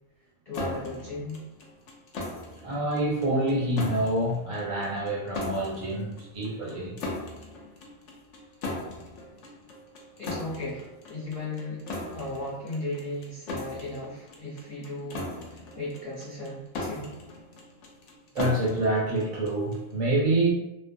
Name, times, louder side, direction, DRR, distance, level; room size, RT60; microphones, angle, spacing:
voice 1, 0.4-1.4 10.2-11.8 12.1-17.1, left 2 dB, 30° left, -10 dB, 0.8 m, -36 dB
sound 1, 0.5-19.9, left 2 dB, 70° left, 0.8 m, -39 dB
voice 2, 2.6-7.0 18.3-20.5, right 1 dB, 75° right, -3 dB, 1.1 m, -27 dB
2.5 x 2.0 x 2.6 m, 0.88 s
omnidirectional pair, 1.4 m